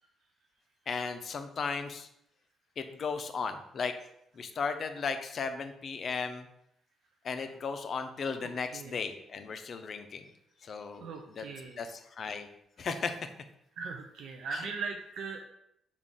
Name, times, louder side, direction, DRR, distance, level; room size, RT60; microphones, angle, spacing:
voice 1, 0.9-2.1 2.8-3.9 4.3-6.5 7.2-10.2 10.6-11.1 11.3-11.5 11.8-12.5 12.8-13.3 14.5-14.7, left 5 dB, 50° left, 8 dB, 0.4 m, -35 dB
voice 2, 8.4-9.0 11.0-11.8 13.8-15.4, right 5 dB, 75° right, 3 dB, 0.3 m, -39 dB
3.5 x 2.3 x 3.8 m, 0.76 s
cardioid pair, 90°, 0 cm